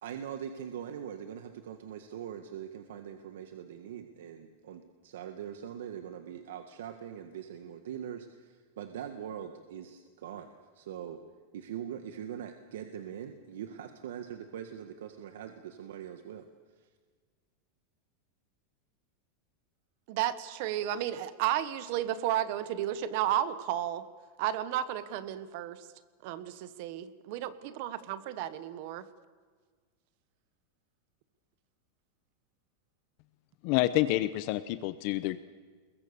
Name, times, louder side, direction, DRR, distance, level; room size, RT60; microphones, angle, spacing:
voice 1, 0.0-11.2 11.5-16.4, right 9 dB, 85° right, 7 dB, 1.7 m, -42 dB
voice 2, 20.1-24.0 24.4-25.9 26.2-29.1, right 12 dB, 45° right, 14 dB, 1.2 m, -33 dB
voice 3, 33.6-35.4, left 16 dB, 40° left, 14 dB, 0.7 m, -28 dB
28.5 x 21.5 x 6.9 m, 1.5 s
supercardioid pair, 175°, 0 cm